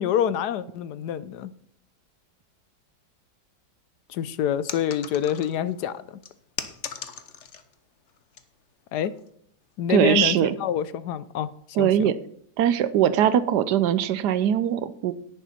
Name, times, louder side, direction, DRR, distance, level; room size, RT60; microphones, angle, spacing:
voice 1, 0.0-1.5 4.1-6.0 8.9-9.1 9.8-11.5 11.8-12.1, left 9 dB, 75° left, 1.1 m, -26 dB
sound 1, 4.7-5.7 6.2-7.7 8.1-8.4 9.0-9.3, left 7 dB, 50° left, 1.0 m, -38 dB
voice 2, 9.9-10.5 11.8-12.2 12.6-15.1, right 10 dB, 70° right, 1.2 m, -21 dB
10.5 x 10.0 x 4.2 m
omnidirectional pair, 1.9 m